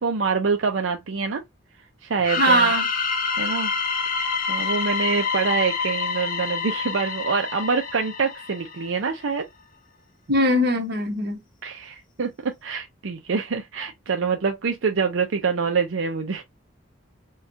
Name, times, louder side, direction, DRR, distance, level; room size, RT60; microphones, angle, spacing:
voice 1, 0.0-1.4 2.0-2.7 3.4-3.7 4.5-9.5 11.6-16.4, right 5 dB, 85° right, 0.6 m, -25 dB
sound 1, 2.2-8.9, left 5 dB, 45° left, 0.6 m, -27 dB
voice 2, 2.4-2.9 10.3-11.4, equal, 55° right, 1.2 m, -20 dB
4.6 x 2.4 x 2.7 m
head